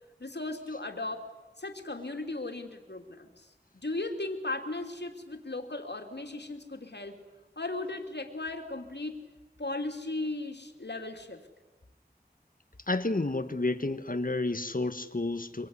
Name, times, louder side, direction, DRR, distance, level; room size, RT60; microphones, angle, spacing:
voice 1, 0.2-1.3 1.6-3.5 3.7-7.1 7.6-9.2 9.6-11.4, left 2 dB, 85° left, 4 dB, 3.1 m, -36 dB
voice 2, 12.9-15.7, left 2 dB, 55° left, 9 dB, 1.5 m, -30 dB
26.0 x 23.5 x 9.9 m, 1.1 s
wide cardioid pair, 40°, 17 cm